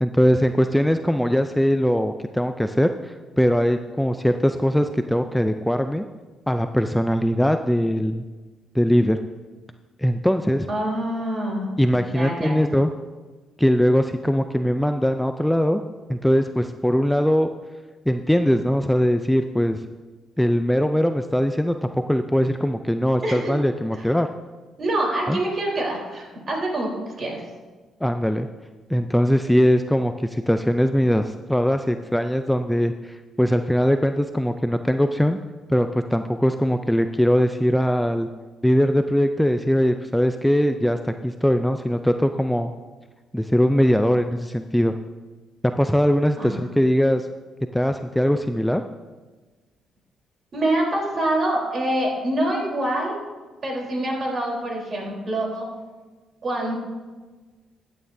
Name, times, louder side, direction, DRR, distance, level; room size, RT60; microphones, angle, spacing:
voice 1, 0.0-6.1 6.5-8.2 8.7-9.2 10.0-10.7 11.8-12.9 13.6-15.8 16.1-17.5 18.1-19.8 20.4-24.3 25.3-25.4 28.0-28.5 28.9-35.4 35.7-38.3 38.6-42.7 43.3-44.9 45.8-47.3 47.7-48.8, equal, 5° left, 7 dB, 0.4 m, -21 dB
voice 2, 10.7-11.7 12.0-12.6 23.2-23.5 24.0-24.1 24.8-26.9 27.2-27.4 46.4-46.7 50.5-53.2 53.6-55.7 56.4-56.7, right 1 dB, 45° right, -1 dB, 3.7 m, -25 dB
14.5 x 9.3 x 2.7 m, 1.3 s
cardioid pair, 90°, 0 cm